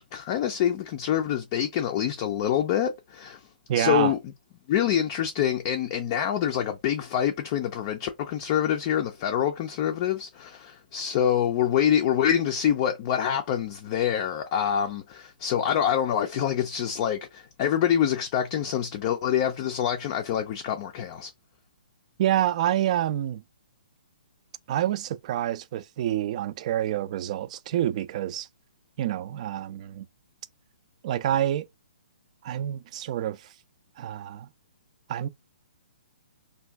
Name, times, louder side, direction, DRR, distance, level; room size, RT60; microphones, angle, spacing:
voice 1, 0.0-3.5 3.7-4.2 4.7-21.3, left 9 dB, 35° left, 0.4 m, -26 dB
voice 2, 3.7-4.1 22.2-23.4 24.7-28.5 29.0-30.1 31.0-31.7 32.4-33.5 34.0-34.5 35.1-35.3, right 12 dB, 45° right, 0.3 m, -27 dB
2.5 x 2.3 x 3.3 m
hypercardioid pair, 140°, 5 cm